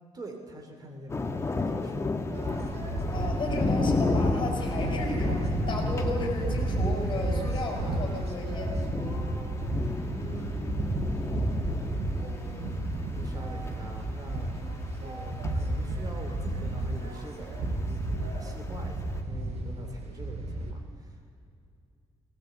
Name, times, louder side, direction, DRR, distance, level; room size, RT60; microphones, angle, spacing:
voice 1, 0.1-2.1 10.1-11.0 12.4-14.6 14.9-21.4, right 1 dB, 35° right, 3 dB, 3.1 m, -44 dB
sound 1, 1.1-19.2, left 3 dB, 25° left, 1.4 m, -34 dB
sound 2, 2.3-20.7, right 2 dB, 75° right, 5.0 m, -32 dB
voice 2, 3.1-8.8, left 2 dB, 45° left, 1 dB, 5.7 m, -34 dB
19.0 x 19.0 x 8.2 m, 2.4 s
cardioid pair, 140°, 11 cm